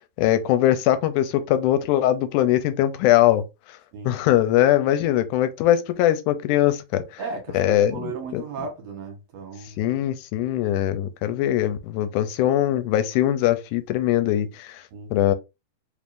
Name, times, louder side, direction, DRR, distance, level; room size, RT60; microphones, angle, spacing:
voice 1, 0.2-3.5 4.1-7.0 7.5-8.4 9.8-14.8 15.1-15.3, left 12 dB, 85° left, 2.1 m, -21 dB
voice 2, 7.2-9.8 14.9-15.1, right 4 dB, 65° right, 2.1 m, -35 dB
4.6 x 3.6 x 2.5 m
omnidirectional pair, 3.5 m